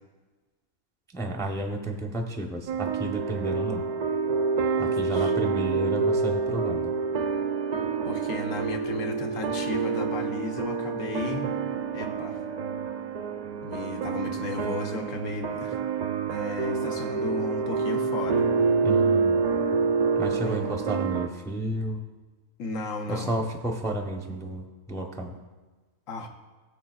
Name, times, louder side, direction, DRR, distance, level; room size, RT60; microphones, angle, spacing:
voice 1, 1.1-3.9 4.8-6.9 18.8-19.4 20.2-22.0 23.1-25.4, right 1 dB, 5° left, 2 dB, 0.5 m, -32 dB
sound 1, 2.7-21.3, right 5 dB, 85° right, 0.3 m, -27 dB
voice 2, 4.8-5.3 8.0-11.5 11.9-12.4 13.6-15.8 16.3-18.4 20.4-20.7 22.6-23.4 26.1-26.3, left 3 dB, 70° left, 4 dB, 1.3 m, -35 dB
17.0 x 7.1 x 2.4 m, 1.3 s
omnidirectional pair, 1.4 m